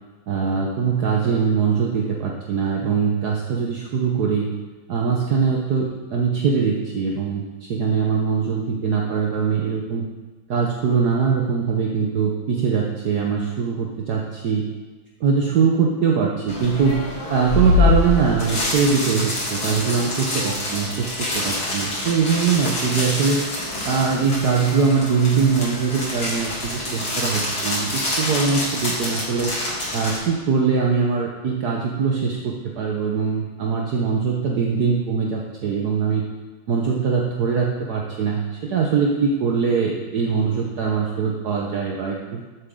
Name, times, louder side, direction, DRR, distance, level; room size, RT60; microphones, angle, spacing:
voice 1, 0.3-4.5 4.9-10.1 10.5-14.6 15.2-17.0 17.3-23.4 23.8-29.5 29.9-36.2 36.7-42.4, right 5 dB, 60° right, -1 dB, 1.4 m, -22 dB
sound 1, 16.5-30.2, left 2 dB, 85° left, 3.9 m, -25 dB
13.5 x 9.0 x 3.8 m, 1.3 s
omnidirectional pair, 2.2 m